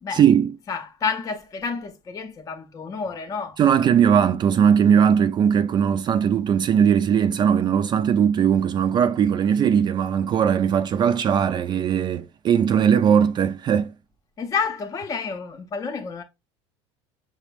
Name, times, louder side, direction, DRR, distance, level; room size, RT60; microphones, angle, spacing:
voice 1, 0.1-0.5 3.6-13.9, right 8 dB, 35° right, 0.3 m, -19 dB
voice 2, 0.7-3.6 14.4-16.2, left 5 dB, 25° left, 0.5 m, -29 dB
5.9 x 2.0 x 3.1 m
supercardioid pair, 110°, 13 cm